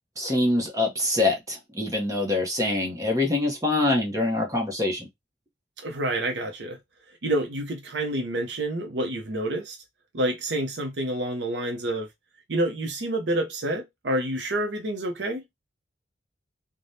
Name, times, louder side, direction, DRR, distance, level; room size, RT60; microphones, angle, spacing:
voice 1, 0.2-5.1, left 2 dB, 20° right, 0.8 m, -25 dB
voice 2, 5.8-6.8 7.2-9.8 10.1-12.1 12.5-15.4, right 1 dB, 70° right, 0.7 m, -28 dB
3.3 x 2.2 x 2.7 m
head